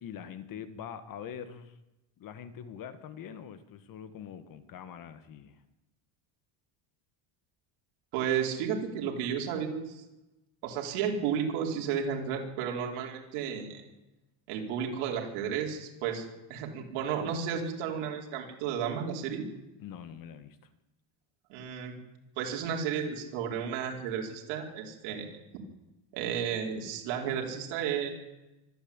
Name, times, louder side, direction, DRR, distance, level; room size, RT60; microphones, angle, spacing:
voice 1, 0.0-1.8 2.2-5.6 19.8-20.6, left 8 dB, 40° left, 12 dB, 1.5 m, -44 dB
voice 2, 8.1-10.0 10.6-13.8 14.5-19.4 21.5-21.9 22.4-25.4 26.1-28.1, right 7 dB, 75° right, 1 dB, 4.8 m, -33 dB
24.5 x 12.5 x 8.8 m, 1.0 s
cardioid pair, 165°, 50 cm